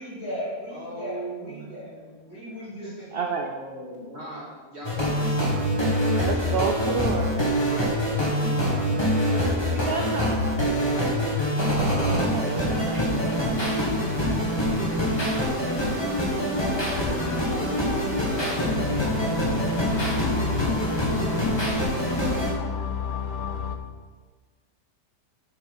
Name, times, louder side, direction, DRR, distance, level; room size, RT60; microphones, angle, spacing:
voice 1, 0.0-1.9 2.3-3.2, equal, 65° left, -7 dB, 3.6 m, -36 dB
voice 2, 0.7-2.1 3.3-5.5 6.8-7.4 8.6-9.6 9.9-10.2 15.9-16.2, right 1 dB, 40° right, -6 dB, 2.8 m, -40 dB
voice 3, 3.1-3.5 6.1-7.5 8.1-8.7 9.7-13.5, right 5 dB, 60° right, 3 dB, 0.6 m, -32 dB
sound 1, 4.8-22.5, equal, 15° left, 1.8 m, -25 dB
sound 2, 16.5-23.8, left 6 dB, 80° left, 1.3 m, -32 dB
8.1 x 6.4 x 5.7 m, 1.4 s
omnidirectional pair, 1.8 m